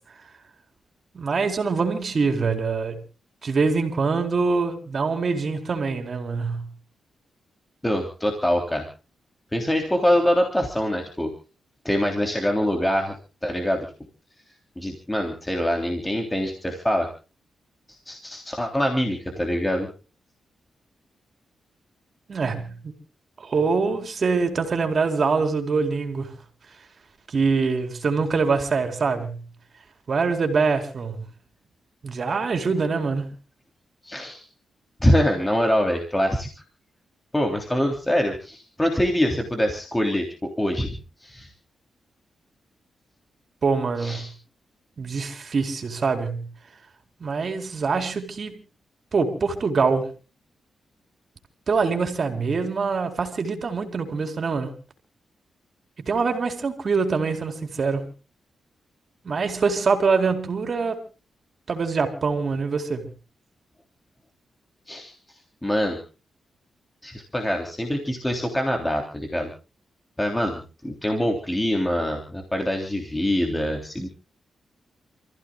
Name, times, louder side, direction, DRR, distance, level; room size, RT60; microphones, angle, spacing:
voice 1, 1.1-3.0 3.4-6.7 22.3-22.9 23.4-26.3 27.3-29.4 30.1-31.2 32.0-33.3 43.6-44.2 45.0-46.5 47.2-48.6 49.1-50.1 51.7-54.7 56.0-58.1 59.2-61.0 61.7-63.1, right 4 dB, 50° right, 4.2 m, -24 dB
voice 2, 7.8-8.8 9.5-11.3 11.8-13.1 13.4-13.9 14.8-17.1 18.1-19.9 34.0-34.4 35.0-36.5 37.3-40.9 41.2-41.5 44.0-44.3 64.9-65.1 65.6-66.0 67.0-69.5 70.2-74.1, equal, 10° left, 3.4 m, -24 dB
29.5 x 15.5 x 2.4 m
cardioid pair, 100°, 0 cm